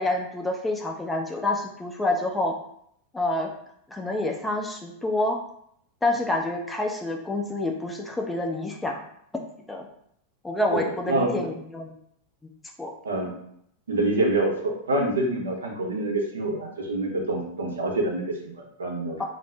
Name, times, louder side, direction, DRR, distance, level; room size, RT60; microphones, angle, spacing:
voice 1, 0.0-2.5 3.1-3.5 3.9-5.4 6.0-9.0 9.7-9.9 10.4-11.9 12.8-12.9 19.2-19.3, left 2 dB, 10° left, 1 dB, 0.4 m, -27 dB
voice 2, 11.1-11.4 13.0-13.3 13.9-19.2, right 2 dB, 70° right, -1 dB, 0.6 m, -26 dB
2.4 x 2.0 x 3.2 m, 0.70 s
figure-of-eight pair, 90°, 0 cm